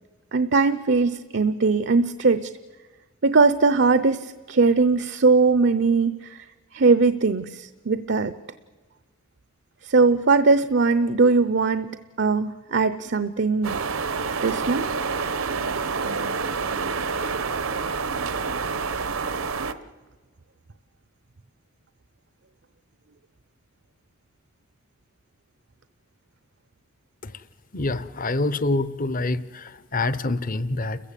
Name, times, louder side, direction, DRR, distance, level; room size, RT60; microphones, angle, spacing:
voice 1, 0.3-2.5 3.2-6.5 6.7-8.3 9.8-11.9 12.2-13.8 14.4-14.9, right 4 dB, 55° right, 13 dB, 0.7 m, -20 dB
sound 1, 13.6-19.7, right 5 dB, 75° right, 1.0 m, -27 dB
voice 2, 27.7-31.0, left 2 dB, 40° left, 16 dB, 0.8 m, -26 dB
30.0 x 15.0 x 8.4 m, 1.3 s
head